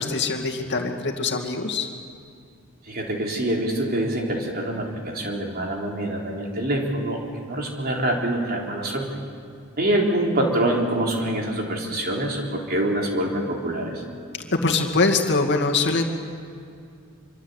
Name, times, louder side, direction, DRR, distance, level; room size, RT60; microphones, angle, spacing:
voice 1, 0.0-1.9 14.5-16.0, left 3 dB, 55° left, 2 dB, 2.3 m, -23 dB
voice 2, 2.9-9.1 9.8-14.0, right 1 dB, 45° right, 0 dB, 4.0 m, -25 dB
25.0 x 24.5 x 8.2 m, 2.4 s
head